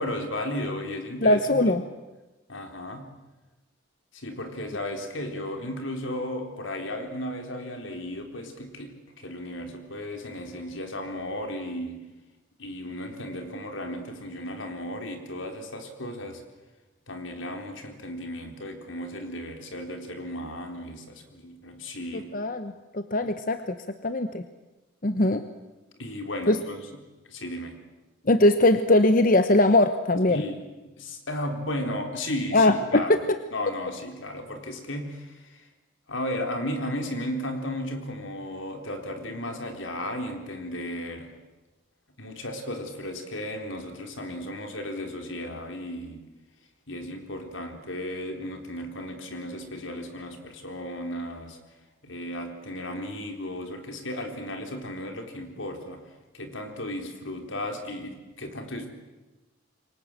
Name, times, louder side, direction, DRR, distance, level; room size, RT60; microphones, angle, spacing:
voice 1, 0.0-1.6 2.5-3.1 4.1-12.0 12.6-16.4 17.1-22.3 26.0-26.8 27.3-27.8 30.3-30.6 31.0-33.2 33.5-35.7 36.1-41.3 42.2-46.2 46.9-51.6 52.0-56.0 56.3-58.9, left 1 dB, 80° left, 5 dB, 3.9 m, -35 dB
voice 2, 1.2-1.8 22.1-23.7 24.0-24.4 25.0-25.4 26.5-26.6 28.3-30.5 32.5-33.2, left 2 dB, 45° left, 9 dB, 1.0 m, -21 dB
28.0 x 24.0 x 7.6 m, 1.1 s
head